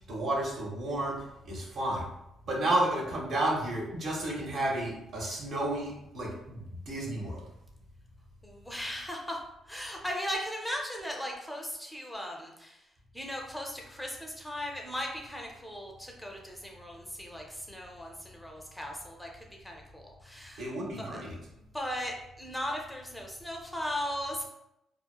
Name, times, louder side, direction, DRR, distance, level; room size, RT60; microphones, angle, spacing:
voice 1, 0.1-1.2 1.5-2.1 2.5-7.4 20.6-21.3, right 1 dB, 70° right, -3 dB, 0.8 m, -31 dB
voice 2, 8.4-9.4 9.7-12.8 13.1-20.7 21.0-21.2 21.7-24.4, equal, 5° left, 0 dB, 0.4 m, -37 dB
2.8 x 2.0 x 2.3 m, 0.83 s
cardioid pair, 90°, 0 cm